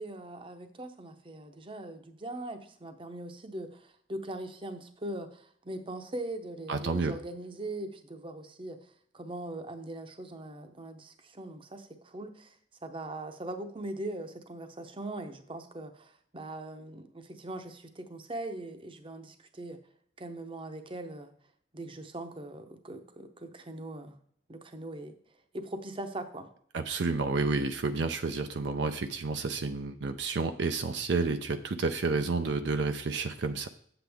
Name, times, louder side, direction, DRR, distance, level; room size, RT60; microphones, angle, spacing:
voice 1, 0.0-8.8 9.1-12.5 12.8-19.8 20.2-21.3 21.7-24.2 24.5-25.1 25.5-26.5, right 1 dB, 30° right, 7 dB, 0.8 m, -41 dB
voice 2, 6.7-7.1 26.7-33.7, right 3 dB, 70° right, 7 dB, 0.5 m, -30 dB
8.6 x 7.9 x 3.5 m, 0.64 s
head